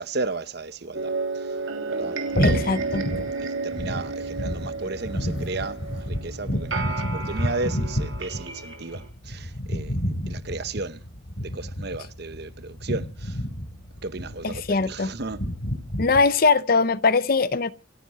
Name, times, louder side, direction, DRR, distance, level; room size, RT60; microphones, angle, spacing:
voice 1, 0.0-1.5 1.9-2.2 2.4-2.7 3.4-10.0 10.3-11.0 11.4-13.4 14.0-15.4, right 3 dB, 55° right, 0.9 m, -34 dB
sound 1, 0.9-9.1, right 4 dB, 80° right, 3.1 m, -32 dB
sound 2, 2.3-16.2, equal, 70° left, 4.6 m, -30 dB
voice 2, 2.4-3.1 14.4-15.1 16.0-17.7, left 4 dB, 45° left, 0.7 m, -21 dB
27.5 x 9.5 x 4.3 m
head